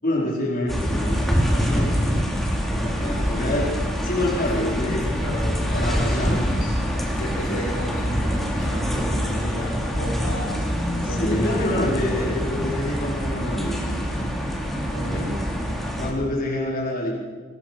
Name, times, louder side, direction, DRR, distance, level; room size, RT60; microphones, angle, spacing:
voice 1, 0.0-2.3 2.7-3.7 4.0-5.0 5.6-6.7 7.5-7.6 11.0-14.3 14.9-15.3 16.0-17.1, left 1 dB, 45° left, -3 dB, 4.6 m, -27 dB
sound 1, 0.7-16.1, equal, ahead, 3.6 m, -25 dB
voice 2, 4.5-6.8 7.1-10.6 11.1-12.4 14.9-15.3, left 1 dB, 65° left, 1 dB, 4.8 m, -32 dB
25.0 x 19.5 x 6.0 m, 1.5 s
head